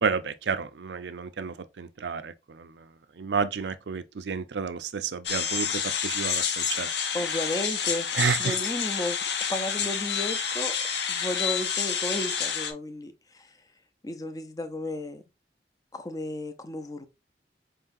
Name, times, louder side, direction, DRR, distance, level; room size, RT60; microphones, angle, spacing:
voice 1, 0.0-2.9 3.2-6.9 8.1-8.5, right 5 dB, 80° right, 0.5 m, -31 dB
sound 1, 5.3-12.7, left 7 dB, 80° left, 0.8 m, -29 dB
voice 2, 7.1-8.1 8.4-9.2 9.5-10.7 11.1-13.6 14.0-15.2 15.9-17.1, left 1 dB, 20° left, 0.5 m, -33 dB
4.7 x 3.8 x 2.6 m
head